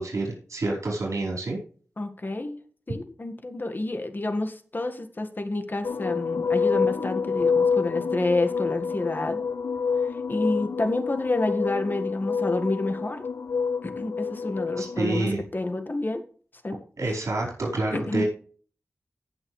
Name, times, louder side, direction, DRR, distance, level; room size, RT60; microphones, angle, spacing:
voice 1, 0.0-1.6 14.8-15.4 17.0-18.2, right 2 dB, 75° right, -2 dB, 4.7 m, -28 dB
voice 2, 2.0-2.6 2.9-9.4 10.3-13.2 13.8-16.2 16.6-16.8 17.9-18.2, left 2 dB, 40° left, 6 dB, 1.8 m, -29 dB
sound 1, 5.8-15.2, left 5 dB, 80° left, 0.8 m, -27 dB
18.0 x 6.3 x 3.3 m, 0.44 s
wide cardioid pair, 85°, 5 cm